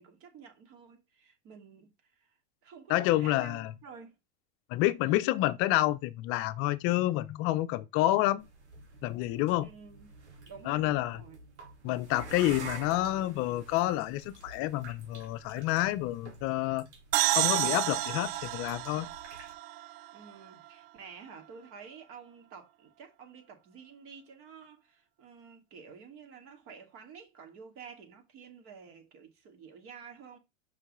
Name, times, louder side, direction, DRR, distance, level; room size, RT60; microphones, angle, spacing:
voice 1, 0.0-2.3 2.6-4.1 9.6-10.1 10.5-11.4 20.1-30.4, right 6 dB, 40° right, 2.4 m, -50 dB
voice 2, 2.9-3.7 4.7-8.5 9.0-9.7 10.6-11.2 11.8-16.9 17.3-19.1, left 16 dB, 40° left, 0.8 m, -28 dB
sound 1, 8.4-19.5, right 3 dB, 85° right, 3.0 m, -48 dB
sound 2, 17.1-20.7, right 17 dB, 60° right, 0.4 m, -30 dB
6.1 x 5.3 x 3.7 m
hypercardioid pair, 120°, 34 cm